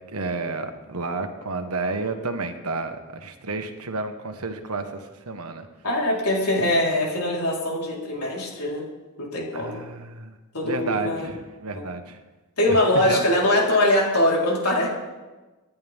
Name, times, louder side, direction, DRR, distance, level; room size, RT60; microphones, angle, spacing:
voice 1, 0.1-5.7 9.5-10.3 10.6-12.2 12.7-13.2, right 3 dB, 75° right, 6 dB, 1.5 m, -31 dB
voice 2, 5.8-8.8 9.2-9.8 10.5-11.3 11.8-11.9 12.6-14.9, left 1 dB, 85° left, -3 dB, 4.2 m, -22 dB
26.0 x 10.5 x 3.6 m, 1.2 s
head